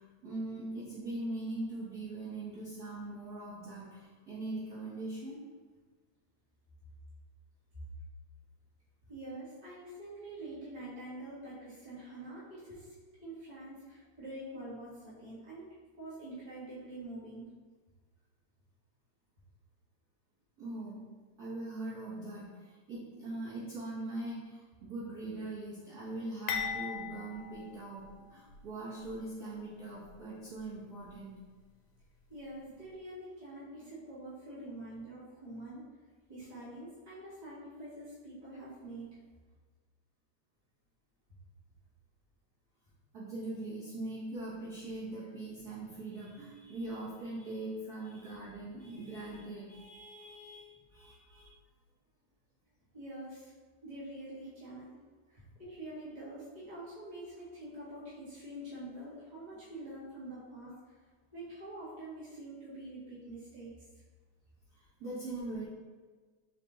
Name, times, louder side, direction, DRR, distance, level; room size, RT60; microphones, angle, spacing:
voice 1, 0.0-5.4 20.6-21.1 21.4-31.3 43.1-51.5 64.7-65.7, right 2 dB, 85° right, -10 dB, 0.8 m, -41 dB
voice 2, 9.1-17.5 32.3-35.8 36.3-39.2 52.9-53.5 53.8-55.0 55.3-61.0 61.3-63.9, right 1 dB, 60° right, -10 dB, 0.4 m, -46 dB
sound 1, 26.5-28.6 29.0-29.2 30.0-30.2, left 7 dB, 80° left, 1.9 m, -39 dB
4.8 x 3.5 x 3.1 m, 1.4 s
omnidirectional pair, 3.4 m